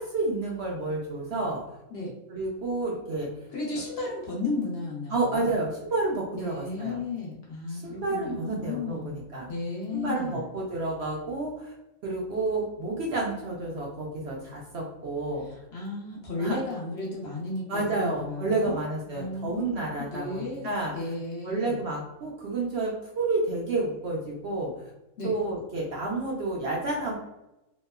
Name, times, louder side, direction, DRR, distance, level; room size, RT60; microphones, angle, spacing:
voice 1, 0.0-1.6 2.3-3.3 5.1-7.0 7.7-9.5 9.9-11.7 12.0-15.5 16.4-16.6 17.7-20.9 21.4-24.7 25.2-27.1, right 2 dB, 65° right, -2 dB, 0.7 m, -30 dB
voice 2, 3.5-5.6 6.3-9.1 9.5-10.4 15.4-21.8 25.2-25.4, left 3 dB, 60° left, -3 dB, 0.8 m, -34 dB
2.9 x 2.1 x 2.2 m, 0.94 s
omnidirectional pair, 1.5 m